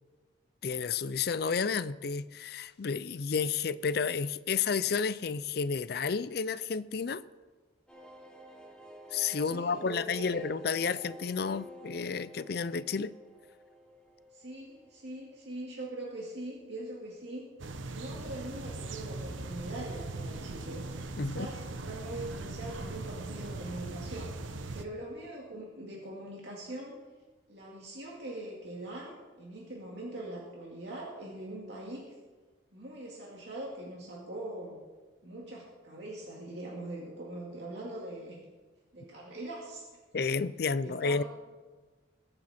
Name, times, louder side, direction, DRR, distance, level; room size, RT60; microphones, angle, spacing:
voice 1, 0.6-7.2 9.1-13.1 21.2-21.5 40.1-41.2, left 5 dB, 50° left, 0.4 m, -31 dB
sound 1, 7.9-15.3 15.6-15.7 16.0-16.1, equal, 5° left, 1.3 m, -50 dB
voice 2, 9.5-10.4 14.3-17.5 17.9-20.8 21.1-27.0 27.5-32.0 32.7-34.8 35.2-38.4 38.9-39.8 40.8-41.2, right 1 dB, 60° right, 2.3 m, -42 dB
sound 2, 17.6-24.8, right 2 dB, 80° right, 0.8 m, -40 dB
21.0 x 8.9 x 4.3 m
head